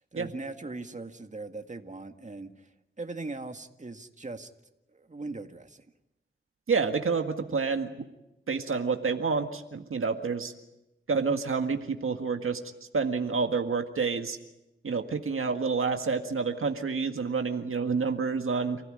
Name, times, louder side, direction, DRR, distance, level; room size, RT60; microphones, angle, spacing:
voice 1, 0.1-2.7 3.0-4.5 4.9-5.8, right 3 dB, 35° right, 6 dB, 2.0 m, -40 dB
voice 2, 6.7-7.9 8.5-10.5 11.1-12.6 12.9-14.4 14.8-18.8, right 5 dB, 80° right, 5 dB, 1.8 m, -28 dB
29.5 x 16.0 x 10.0 m, 0.93 s
wide cardioid pair, 65°, 21 cm